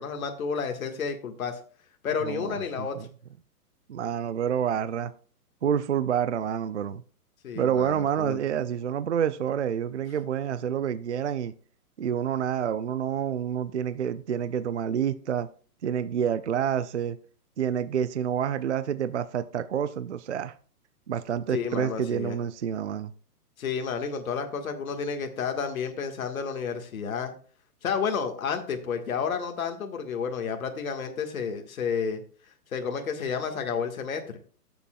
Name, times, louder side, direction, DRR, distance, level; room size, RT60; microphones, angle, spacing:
voice 1, 0.0-1.6 2.0-3.0 7.4-8.4 21.5-22.4 23.6-27.3 27.8-32.2 32.7-34.2, left 6 dB, 60° left, 1.7 m, -31 dB
voice 2, 2.2-3.1 3.9-5.1 5.6-7.0 7.5-11.5 12.0-15.5 15.8-17.2 17.6-20.5 21.1-23.1, right 8 dB, 50° right, 0.4 m, -28 dB
15.0 x 7.1 x 2.3 m
hypercardioid pair, 175°, 46 cm